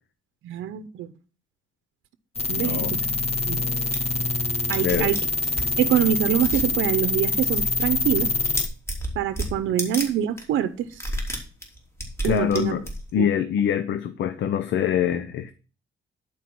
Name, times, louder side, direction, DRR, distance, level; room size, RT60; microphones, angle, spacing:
voice 1, 0.4-1.1 2.5-3.0 3.5-3.6 4.7-5.2 5.8-8.3 9.2-11.0 12.2-12.8 13.2-13.3, right 10 dB, 75° right, 10 dB, 0.7 m, -25 dB
sound 1, 2.4-8.7, left 3 dB, 30° left, 1.2 m, -25 dB
voice 2, 2.5-2.9 4.8-5.1 9.7-9.8 12.2-12.8 13.1-15.5, left 9 dB, 70° left, 10 dB, 0.7 m, -24 dB
sound 2, 3.8-4.0 4.4-4.5 4.7-5.7 6.4-6.7 7.1-10.1 10.4-10.5 10.9-13.2, equal, 15° left, 3.2 m, -31 dB
11.0 x 4.6 x 6.0 m, 0.36 s
cardioid pair, 90°, 20 cm